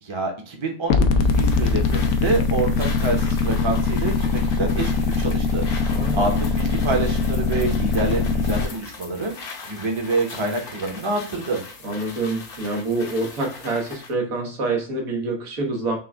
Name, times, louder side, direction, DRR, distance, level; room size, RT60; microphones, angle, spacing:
voice 1, 0.0-9.3 9.6-11.6, right 3 dB, 25° right, 2 dB, 0.8 m, -27 dB
sound 1, 0.9-8.7, left 4 dB, 85° left, 1.0 m, -21 dB
sound 2, 1.2-14.2, left 4 dB, 50° left, 0.9 m, -40 dB
voice 2, 5.9-6.3 11.8-16.0, right 2 dB, 85° right, 0 dB, 1.7 m, -26 dB
5.8 x 2.3 x 3.4 m, 0.40 s
omnidirectional pair, 1.4 m